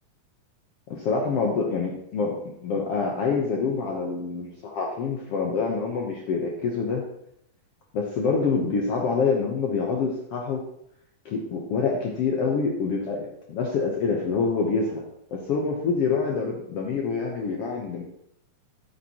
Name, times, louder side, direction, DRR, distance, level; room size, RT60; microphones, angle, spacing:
voice 1, 0.9-7.0 7.9-10.6 11.2-15.0 15.3-18.0, left 4 dB, 85° left, 0 dB, 1.3 m, -26 dB
9.9 x 8.4 x 2.9 m, 0.76 s
omnidirectional pair, 4.1 m